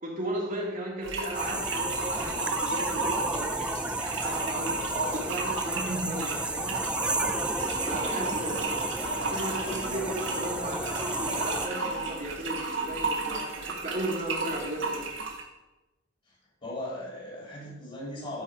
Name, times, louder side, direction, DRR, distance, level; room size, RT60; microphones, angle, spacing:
voice 1, 0.0-4.8 5.1-6.8 7.8-8.6 9.3-15.0, right 1 dB, 45° right, -3 dB, 1.6 m, -35 dB
sound 1, 1.0-15.4, right 3 dB, 70° right, 1.5 m, -34 dB
sound 2, 1.3-11.7, right 2 dB, 5° right, 0.4 m, -32 dB
voice 2, 4.9-5.3 8.0-8.7 9.7-10.1 16.2-16.3 16.6-18.4, left 1 dB, 35° left, -5 dB, 2.6 m, -39 dB
sound 3, 7.5-12.8, left 1 dB, 70° left, 2.0 m, -42 dB
12.0 x 4.4 x 4.7 m, 1.1 s
head